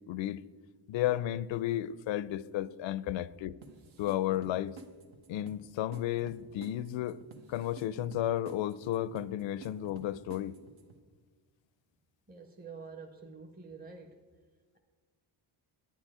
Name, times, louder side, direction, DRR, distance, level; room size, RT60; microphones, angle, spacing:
voice 1, 0.1-0.4 0.9-3.6 4.0-4.8 5.3-7.2 7.5-10.6, left 12 dB, 65° left, 0.5 m, -33 dB
sound 1, 3.6-11.0, right 4 dB, 70° right, 1.3 m, -52 dB
voice 2, 12.3-14.3, right 4 dB, 20° right, 0.8 m, -47 dB
9.6 x 9.3 x 4.9 m
cardioid pair, 95°, 50 cm